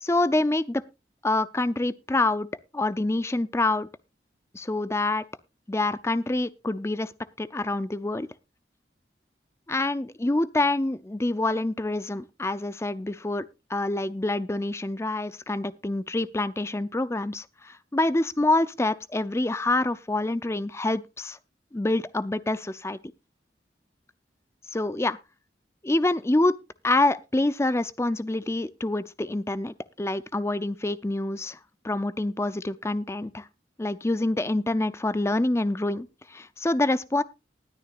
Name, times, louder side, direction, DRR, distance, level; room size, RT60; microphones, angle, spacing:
voice 1, 0.0-0.8 1.2-2.5 2.7-3.9 4.5-5.2 5.7-7.1 7.4-8.3 9.7-21.4 21.7-23.0 24.7-25.2 25.8-26.6 26.8-31.6 31.8-33.5 33.8-37.2, left 2 dB, 15° left, 0.5 m, -26 dB
19.5 x 9.8 x 2.4 m
head